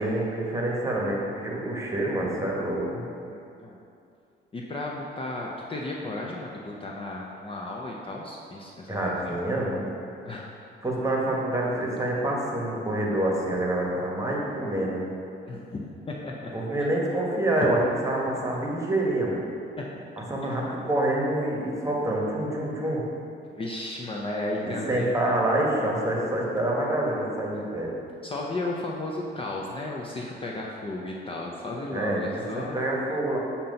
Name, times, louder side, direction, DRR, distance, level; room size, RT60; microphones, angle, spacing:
voice 1, 0.0-3.0 8.9-9.8 10.8-15.1 16.5-19.4 20.3-23.0 24.6-27.9 31.9-33.4, right 1 dB, 15° right, -3 dB, 1.2 m, -27 dB
voice 2, 3.3-3.8 4.5-9.4 10.2-10.5 15.5-16.5 16.8-16.9 19.8-19.9 20.5-20.6 23.5-25.1 28.2-32.8, left 2 dB, 25° left, -2 dB, 0.6 m, -34 dB
7.2 x 2.9 x 5.3 m, 2.6 s
cardioid pair, 90°, 20 cm